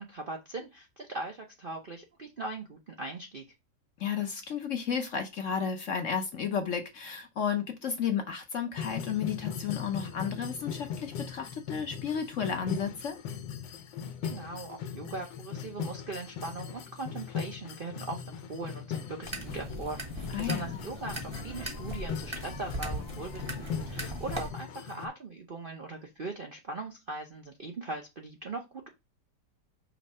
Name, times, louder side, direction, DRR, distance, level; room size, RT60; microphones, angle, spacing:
voice 1, 0.0-3.4 14.2-28.9, right 3 dB, 50° right, 0.6 m, -40 dB
voice 2, 4.0-13.2 20.3-20.8, left 7 dB, 55° left, 1.0 m, -32 dB
sound 1, 8.8-25.1, left 7 dB, 85° left, 1.5 m, -39 dB
sound 2, 19.2-24.5, right 1 dB, 20° right, 0.9 m, -38 dB
5.5 x 3.2 x 5.4 m
omnidirectional pair, 2.0 m